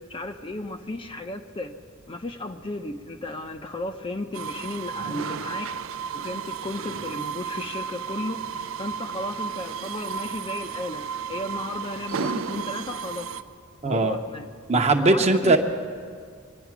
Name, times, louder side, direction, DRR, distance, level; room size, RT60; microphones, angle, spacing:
voice 1, 0.1-1.7 2.1-5.7 6.1-8.4 8.8-13.3 13.8-14.4 15.1-15.5, left 2 dB, 25° left, 6 dB, 0.7 m, -34 dB
sound 1, 4.3-13.4, right 6 dB, 65° right, 0.6 m, -33 dB
voice 2, 13.8-14.2 14.7-15.6, right 2 dB, 30° right, 5 dB, 0.9 m, -19 dB
24.5 x 9.3 x 6.0 m, 2.1 s
head